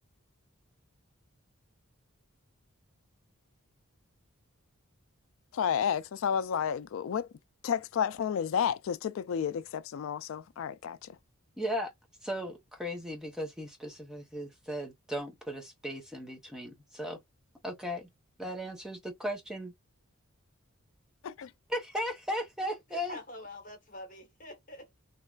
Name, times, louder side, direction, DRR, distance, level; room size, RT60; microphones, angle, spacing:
voice 1, 5.5-7.3 7.6-11.1 21.2-21.5, left 8 dB, 65° left, 0.3 m, -31 dB
voice 2, 11.6-11.9 12.2-17.2 17.6-18.1 18.4-19.7 21.7-23.2, equal, 5° right, 0.8 m, -36 dB
voice 3, 22.9-25.0, left 1 dB, 35° left, 1.2 m, -46 dB
3.1 x 2.3 x 2.3 m
head